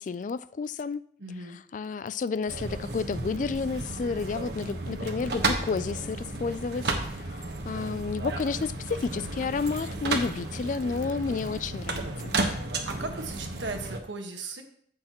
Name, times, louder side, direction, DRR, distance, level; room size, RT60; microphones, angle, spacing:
voice 1, 0.0-1.0 1.7-12.4, left 4 dB, 45° left, 0.3 m, -31 dB
voice 2, 1.2-1.6 12.6-14.6, right 3 dB, 90° right, 1.4 m, -37 dB
sound 1, 2.5-14.0, right 3 dB, 65° right, 1.2 m, -33 dB
14.0 x 6.5 x 3.0 m
head